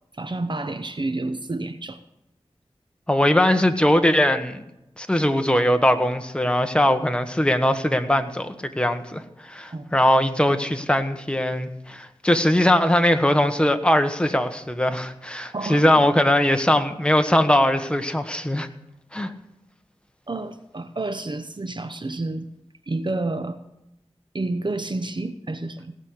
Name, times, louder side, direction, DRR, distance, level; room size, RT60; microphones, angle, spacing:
voice 1, 0.1-2.0 9.7-9.9 15.5-15.9 19.3-19.4 20.3-22.5 22.9-23.6 24.3-25.9, right 2 dB, 45° right, 9 dB, 0.8 m, -29 dB
voice 2, 3.1-4.6 5.0-18.7 19.1-19.3, left 1 dB, 10° left, 7 dB, 1.4 m, -20 dB
18.0 x 6.4 x 8.3 m, 0.90 s
wide cardioid pair, 50°, 11 cm